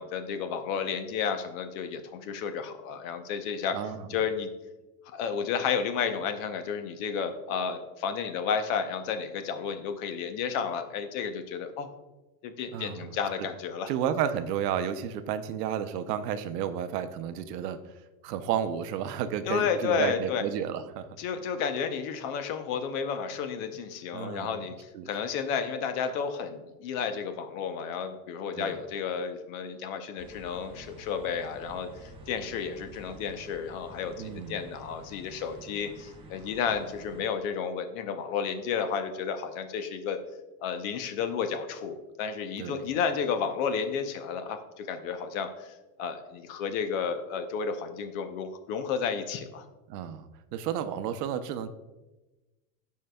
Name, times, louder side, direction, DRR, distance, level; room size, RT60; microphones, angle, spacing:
voice 1, 0.0-3.8 4.1-4.5 5.1-11.9 12.4-13.9 19.5-20.4 21.2-40.2 40.6-49.6, left 6 dB, 55° left, 8 dB, 0.8 m, -32 dB
voice 2, 3.7-4.1 12.7-13.5 13.9-18.0 18.2-21.1 24.1-24.6 24.9-25.1 28.6-28.7 34.2-34.6 42.6-42.9 49.9-51.7, right 9 dB, 80° right, 10 dB, 0.7 m, -32 dB
sound 1, 30.2-37.2, right 2 dB, 10° right, 0.7 m, -49 dB
12.5 x 4.7 x 2.3 m, 1.1 s
supercardioid pair, 145°, 47 cm